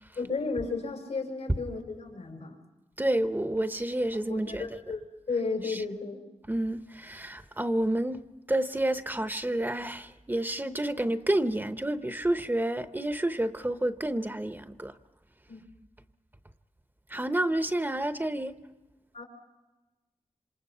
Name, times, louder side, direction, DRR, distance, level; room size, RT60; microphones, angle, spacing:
voice 1, 0.1-2.6 4.3-6.2 15.5-15.6 19.1-19.2, left 4 dB, 85° left, 5.0 m, -33 dB
voice 2, 3.0-4.7 5.6-5.8 6.5-14.9 17.1-18.5, right 1 dB, 15° right, 0.8 m, -29 dB
27.0 x 26.5 x 5.7 m
wide cardioid pair, 105°, 12 cm